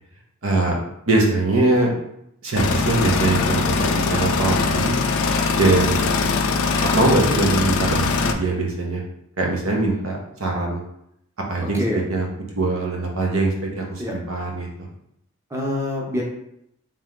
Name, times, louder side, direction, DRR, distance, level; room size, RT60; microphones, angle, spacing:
voice 1, 0.4-0.8 1.1-1.9 2.4-5.0 5.5-6.0 6.8-9.0 9.4-10.8 11.5-11.8 12.1-12.3 12.5-14.9, right 2 dB, 80° right, -1 dB, 1.0 m, -22 dB
sound 1, 2.6-8.3, left 4 dB, 80° left, 0.4 m, -21 dB
voice 2, 15.5-16.2, left 1 dB, 15° right, -2 dB, 0.6 m, -25 dB
3.5 x 2.9 x 3.6 m, 0.76 s
head